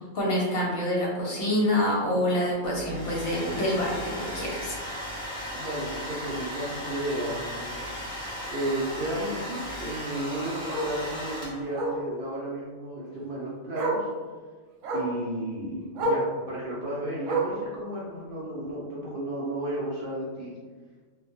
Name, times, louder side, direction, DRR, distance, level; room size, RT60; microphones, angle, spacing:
voice 1, 0.1-4.8, left 1 dB, 60° left, -4 dB, 0.7 m, -26 dB
Domestic sounds home sounds, 2.6-11.8, equal, 5° left, 0.7 m, -36 dB
Bark, 4.8-4.9 5.3-5.4 5.7-5.8 7.2-7.3 9.8-9.9 10.7-10.9 11.7-12.0 13.2-13.3 13.7-14.1 14.8-15.2 15.9-16.3 17.2-17.7 18.6-18.7, right 2 dB, 85° right, 1.0 m, -28 dB
voice 2, 5.5-8.0 8.5-14.1 14.9-20.5, right 1 dB, 60° right, -6 dB, 0.6 m, -33 dB
2.1 x 2.1 x 2.9 m, 1.4 s
omnidirectional pair, 1.3 m